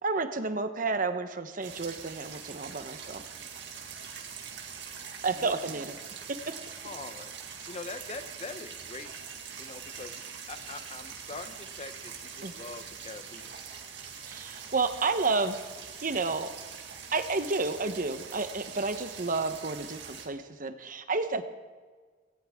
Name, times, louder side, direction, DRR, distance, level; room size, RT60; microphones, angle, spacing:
voice 1, 0.0-3.2 5.2-6.0 6.3-6.6 12.4-12.5 14.2-15.7 16.0-16.5 17.1-21.4, right 3 dB, 50° right, 9 dB, 1.0 m, -31 dB
sound 1, 1.6-20.3, right 6 dB, 80° right, 2.0 m, -43 dB
voice 2, 5.3-5.8 6.8-9.1 9.6-10.2 10.5-13.5, left 3 dB, 35° left, 10 dB, 0.7 m, -43 dB
17.5 x 17.5 x 3.6 m, 1.5 s
head